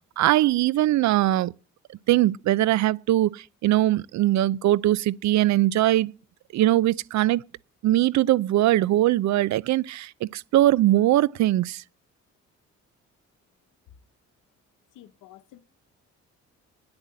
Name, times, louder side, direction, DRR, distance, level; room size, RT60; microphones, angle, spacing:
voice 1, 0.2-1.5 2.1-6.1 6.5-7.4 7.8-11.8, right 14 dB, 65° right, 0.5 m, -21 dB
voice 2, 14.9-15.6, left 13 dB, 90° left, 0.9 m, -50 dB
9.7 x 8.2 x 7.6 m
cardioid pair, 90°, 30 cm